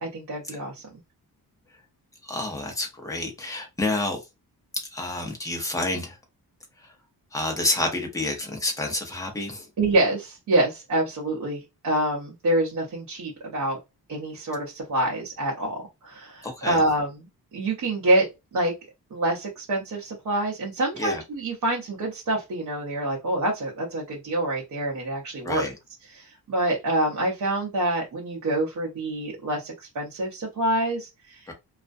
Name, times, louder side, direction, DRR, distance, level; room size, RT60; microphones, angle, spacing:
voice 1, 0.0-0.8 9.8-13.8 14.1-17.1 17.5-18.7 19.1-25.7 26.1-31.5, right 1 dB, 50° right, 0.7 m, -26 dB
voice 2, 2.2-4.2 4.9-6.2 6.8-6.9 7.3-9.7 16.4-16.8 21.0-21.2 25.4-25.7 31.5-31.6, left 2 dB, 10° left, 0.6 m, -29 dB
2.4 x 2.1 x 2.5 m
wide cardioid pair, 155°, 38 cm